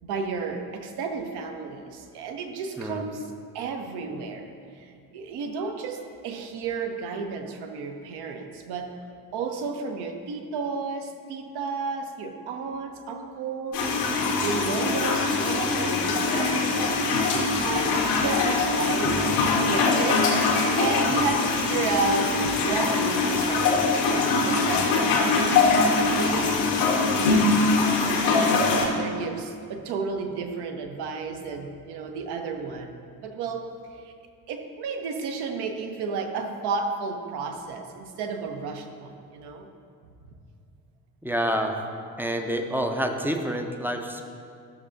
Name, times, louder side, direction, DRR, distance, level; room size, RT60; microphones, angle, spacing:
voice 1, 0.0-8.9 9.3-14.1 14.4-27.5 28.0-32.9 33.2-34.1 34.5-39.7, right 4 dB, 55° right, 5 dB, 0.9 m, -32 dB
sound 1, 13.7-28.9, left 3 dB, 75° left, 1.3 m, -23 dB
voice 2, 41.2-41.8 42.2-44.2, equal, 5° right, 4 dB, 0.7 m, -28 dB
12.5 x 6.4 x 2.6 m, 2.3 s
figure-of-eight pair, 50°, 47 cm